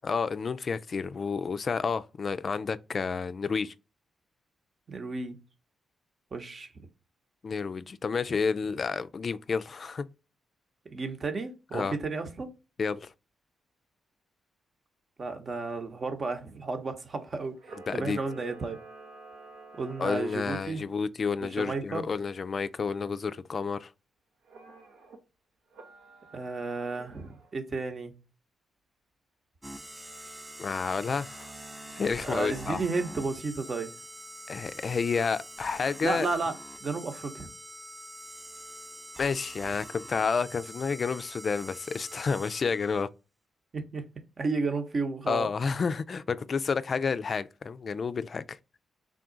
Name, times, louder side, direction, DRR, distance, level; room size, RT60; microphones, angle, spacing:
voice 1, 0.0-3.7 7.4-10.1 11.7-12.0 12.8-13.1 17.9-18.2 20.0-23.9 30.6-31.5 32.0-32.8 34.5-36.3 39.2-43.1 45.3-48.6, left 5 dB, 55° left, 0.3 m, -30 dB
voice 2, 4.9-5.4 6.3-6.9 10.8-12.5 15.2-18.8 19.7-20.8 21.4-22.0 26.3-28.1 32.2-33.9 36.0-36.5 36.8-37.5 43.7-44.0 44.4-45.5, right 3 dB, 50° right, 0.8 m, -33 dB
Camera, 17.6-20.9 24.4-25.2 25.7-27.5, right 3 dB, 90° right, 0.8 m, -49 dB
sound 1, 29.6-43.0, right 1 dB, 15° right, 0.6 m, -45 dB
3.6 x 2.4 x 3.7 m
supercardioid pair, 55°, 0 cm